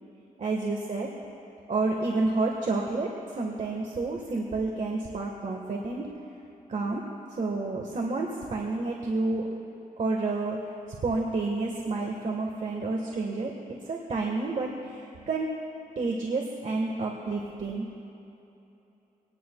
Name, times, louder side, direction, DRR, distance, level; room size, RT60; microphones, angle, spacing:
voice 1, 0.4-1.1 1.7-6.1 6.7-7.0 7.4-9.5 10.0-10.6 10.9-15.5 15.9-17.9, right 3 dB, 55° right, 0 dB, 1.5 m, -30 dB
24.5 x 19.0 x 2.3 m, 2.9 s
cardioid pair, 90°, 15 cm